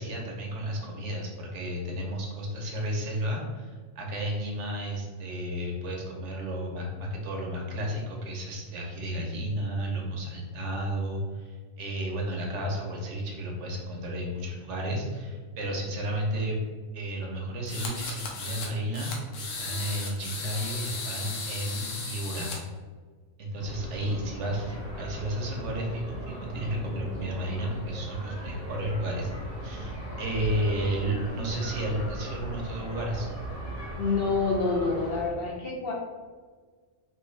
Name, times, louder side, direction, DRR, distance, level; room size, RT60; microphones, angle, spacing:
voice 1, 0.0-16.6 16.9-22.5 23.4-33.3, right 1 dB, 70° right, -1 dB, 1.0 m, -32 dB
sound 1, 17.7-18.7 18.9-22.6, left 4 dB, 80° left, 1.0 m, -36 dB
sound 2, 23.6-35.3, right 1 dB, 10° left, 1.0 m, -38 dB
voice 2, 34.0-35.9, left 3 dB, 60° left, -3 dB, 0.8 m, -27 dB
3.3 x 2.9 x 3.1 m, 1.5 s
omnidirectional pair, 1.3 m